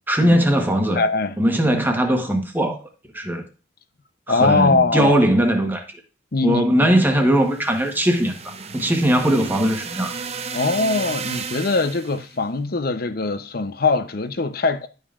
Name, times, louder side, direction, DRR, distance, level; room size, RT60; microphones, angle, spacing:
voice 1, 0.1-1.0 1.4-2.8 3.1-3.4 4.3-5.8 6.4-10.1, equal, 10° right, 1.1 m, -19 dB
voice 2, 0.9-1.4 4.3-5.1 6.3-6.7 10.5-14.9, left 3 dB, 50° left, 0.7 m, -21 dB
sound 1, 7.3-12.3, right 5 dB, 30° right, 0.6 m, -33 dB
11.5 x 5.3 x 2.5 m
head